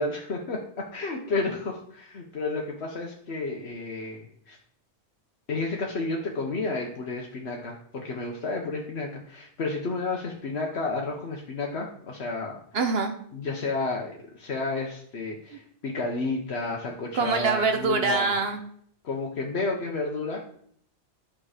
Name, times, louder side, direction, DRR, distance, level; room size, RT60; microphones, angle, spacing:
voice 1, 0.0-4.6 5.5-12.6 13.3-18.3 19.0-20.4, left 3 dB, 75° left, 0 dB, 1.3 m, -31 dB
voice 2, 12.7-13.1 15.5-15.6 17.1-18.7, right 4 dB, 65° right, 5 dB, 1.1 m, -24 dB
8.8 x 6.3 x 4.9 m, 0.63 s
omnidirectional pair, 1.1 m